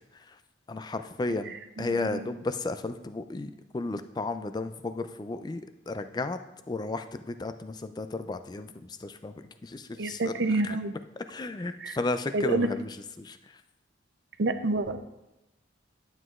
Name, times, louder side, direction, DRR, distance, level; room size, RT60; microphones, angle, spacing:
voice 1, 0.7-6.4 6.7-10.3 10.6-10.8 11.3-12.9 13.2-13.4, left 3 dB, 20° left, 10 dB, 0.3 m, -33 dB
voice 2, 1.8-2.3 10.0-10.9 11.8-12.0 12.3-12.7 14.4-15.0, right 2 dB, 65° right, 9 dB, 0.5 m, -28 dB
11.0 x 7.8 x 2.4 m, 0.93 s
head